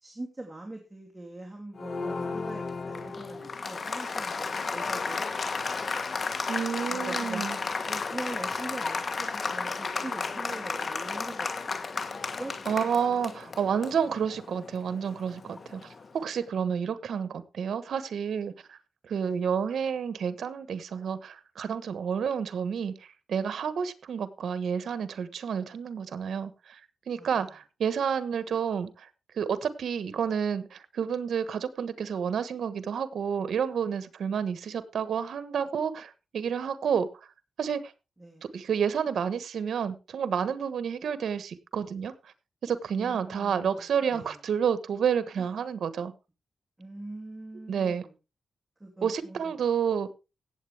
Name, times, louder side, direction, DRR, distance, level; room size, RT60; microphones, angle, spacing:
voice 1, 0.0-6.1 6.9-7.5 7.8-11.5 11.9-12.1 12.4-13.3 16.9-17.0 19.2-19.4 27.1-27.5 38.2-38.5 42.9-44.4 45.4-45.5 46.8-48.1 48.8-49.6, right 2 dB, 15° right, 0 dB, 2.8 m, -43 dB
Applause, 1.8-16.1, left 4 dB, 45° left, 1.4 m, -33 dB
voice 2, 6.5-7.6 12.7-15.8 16.1-18.8 19.0-22.9 23.3-26.8 27.1-29.1 29.3-37.1 37.6-37.9 38.4-42.1 42.6-46.1 47.7-48.1 49.0-50.1, right 7 dB, 75° right, 14 dB, 1.3 m, -30 dB
16.5 x 7.9 x 3.5 m, 0.29 s
cardioid pair, 105°, 0 cm